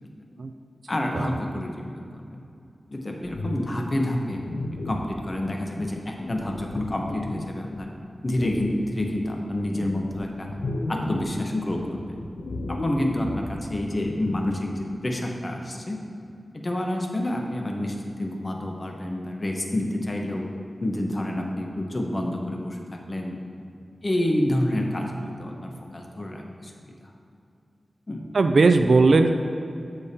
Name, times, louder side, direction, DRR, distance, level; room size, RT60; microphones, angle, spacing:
voice 1, 0.9-2.0 2.3-2.4 2.9-4.4 4.8-7.9 8.2-10.5 10.9-12.2 12.7-16.0 16.5-20.5 20.8-23.4 24.0-26.9 28.1-28.3, left 1 dB, 30° left, 1 dB, 0.9 m, -28 dB
sound 1, 3.2-5.2 5.8-7.8 8.3-8.7 9.2-11.4 11.7-14.5, left 2 dB, 70° left, 0.6 m, -34 dB
voice 2, 28.3-29.3, right 3 dB, 65° right, 6 dB, 0.3 m, -18 dB
13.5 x 5.1 x 2.8 m, 2.6 s
wide cardioid pair, 115°, 0 cm